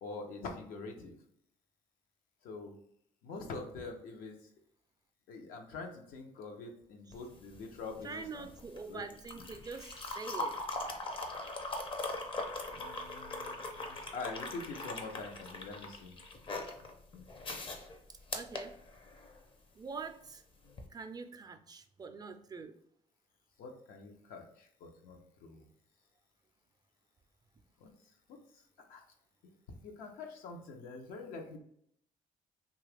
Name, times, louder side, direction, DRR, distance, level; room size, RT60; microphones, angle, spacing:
voice 1, 0.0-1.2 2.4-2.7 3.2-4.3 5.3-8.5 8.9-9.0 9.3-9.4 12.7-16.2 23.6-25.6 27.8-27.9 28.9-29.0 29.8-31.6, left 3 dB, 85° left, 3 dB, 0.7 m, -45 dB
sound 1, 7.1-19.4 20.7-20.9, left 2 dB, 35° left, 0.6 m, -41 dB
voice 2, 8.0-10.6 18.1-18.7 19.8-20.4 20.9-22.7, right 4 dB, 25° right, 7 dB, 0.3 m, -44 dB
2.8 x 2.3 x 3.3 m, 0.69 s
cardioid pair, 85°, 14 cm